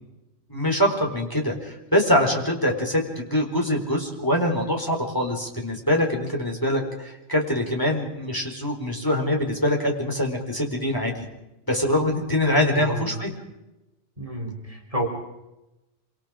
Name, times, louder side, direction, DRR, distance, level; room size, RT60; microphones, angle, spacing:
voice 1, 0.5-11.2 11.7-13.3, left 1 dB, 15° left, 0 dB, 4.5 m, -24 dB
voice 2, 12.5-13.2 14.2-15.1, right 1 dB, 30° right, 2 dB, 3.5 m, -30 dB
26.5 x 26.0 x 5.1 m, 0.95 s
omnidirectional pair, 1.3 m